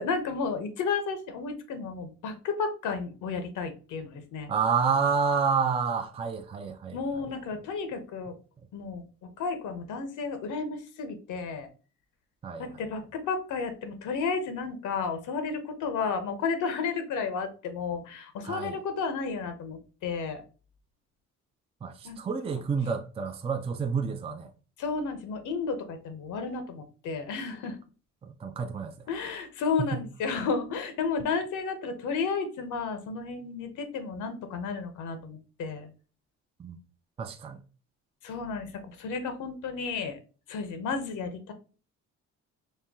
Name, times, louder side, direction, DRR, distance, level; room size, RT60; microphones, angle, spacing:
voice 1, 0.0-4.5 6.9-8.3 8.7-11.7 12.6-20.4 22.0-22.2 24.8-27.8 29.1-35.9 38.2-40.2 40.5-41.5, left 5 dB, 80° left, 0.8 m, -32 dB
voice 2, 4.5-7.3 12.4-12.8 18.4-18.8 21.8-24.5 28.2-28.9 29.8-30.0 36.6-36.8 37.2-37.6, right 5 dB, 20° right, 0.4 m, -29 dB
4.3 x 2.2 x 3.5 m
cardioid pair, 90°, 30 cm